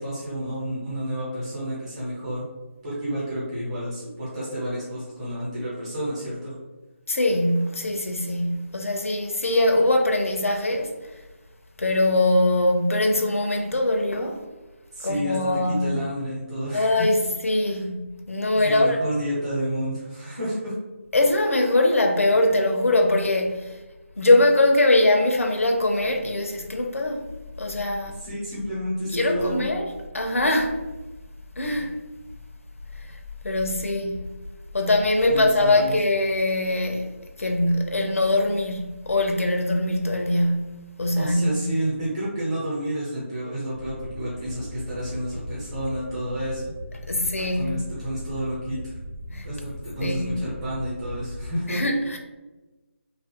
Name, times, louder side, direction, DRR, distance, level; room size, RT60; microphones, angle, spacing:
voice 1, 0.0-2.4 2.8-6.6 14.9-15.5 15.8-17.1 17.7-17.8 18.5-20.7 28.2-29.7 35.3-36.0 41.1-46.7 47.5-48.9 49.3-51.8, equal, 20° right, 0.9 m, -30 dB
voice 2, 7.1-10.9 11.8-14.4 15.0-15.9 16.7-19.0 21.1-23.6 24.2-27.2 27.6-28.2 29.1-30.8 31.6-32.0 33.1-33.2 33.4-34.2 34.7-37.1 37.4-41.6 47.1-47.7 49.3-49.5 50.0-50.4 51.7-52.2, left 2 dB, 80° left, 0.5 m, -22 dB
sound 1, 43.7-51.5, left 1 dB, 85° right, 0.6 m, -38 dB
3.0 x 2.4 x 2.8 m
figure-of-eight pair, 160°, 7 cm